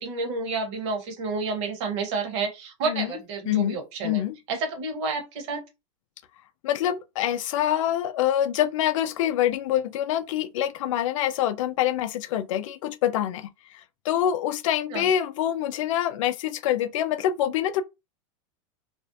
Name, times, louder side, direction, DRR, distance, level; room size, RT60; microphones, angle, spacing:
voice 1, 0.0-4.2 4.5-5.6 14.9-15.1, right 4 dB, 60° right, 1.0 m, -30 dB
voice 2, 3.5-3.8 4.0-4.4 6.6-17.8, left 11 dB, 75° left, 0.4 m, -25 dB
2.4 x 2.0 x 2.5 m
supercardioid pair, 135°, 17 cm